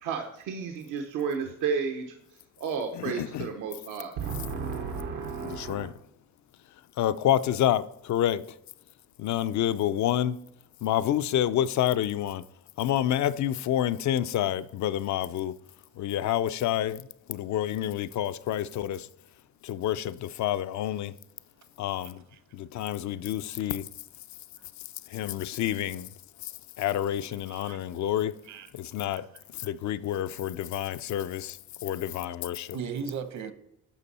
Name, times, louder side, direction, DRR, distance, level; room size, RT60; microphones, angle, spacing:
voice 1, 0.0-2.1 2.6-5.9, right 6 dB, 90° right, 1.0 m, -32 dB
voice 2, 2.9-3.5 5.4-5.9 7.0-8.4 9.2-10.4 10.8-12.4 12.8-15.5 16.0-19.1 19.6-21.2 21.8-22.2 22.5-23.9 25.1-26.1 26.4-26.5 26.8-28.4 28.7-29.3 29.5-32.8, left 11 dB, 70° left, 0.6 m, -28 dB
voice 3, 27.5-27.8 28.5-28.7 29.2-29.3 32.7-33.5, right 6 dB, 65° right, 1.0 m, -36 dB
12.0 x 5.4 x 4.2 m
cardioid pair, 90°, 30 cm